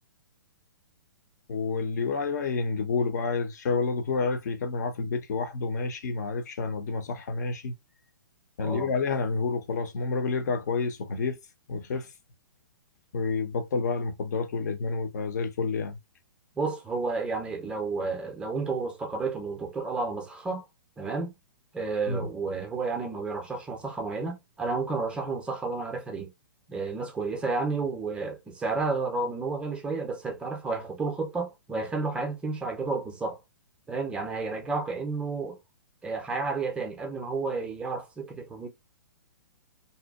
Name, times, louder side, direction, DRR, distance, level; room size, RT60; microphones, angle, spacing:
voice 1, 1.5-7.8 8.6-11.4 11.7-12.1 13.1-16.0 22.1-22.3, left 4 dB, 50° left, 0.5 m, -29 dB
voice 2, 16.6-20.7 21.0-21.3 21.7-26.3 26.7-33.4 33.9-35.6 36.0-38.7, right 4 dB, 10° right, 0.4 m, -31 dB
2.6 x 2.1 x 2.2 m
figure-of-eight pair, 120°, 12 cm